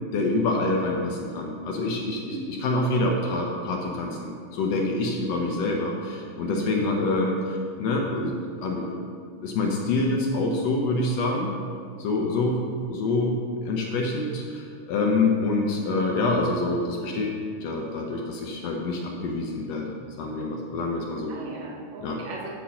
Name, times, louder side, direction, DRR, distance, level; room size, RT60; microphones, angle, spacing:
voice 1, 0.1-8.4 8.6-9.0 9.4-11.5 12.0-13.4 13.6-21.3 22.0-22.2, left 2 dB, 75° left, 0 dB, 1.5 m, -26 dB
voice 2, 6.4-7.1 21.3-22.5, right 3 dB, 85° right, -1 dB, 2.7 m, -37 dB
8.6 x 4.5 x 5.6 m, 2.2 s
omnidirectional pair, 3.8 m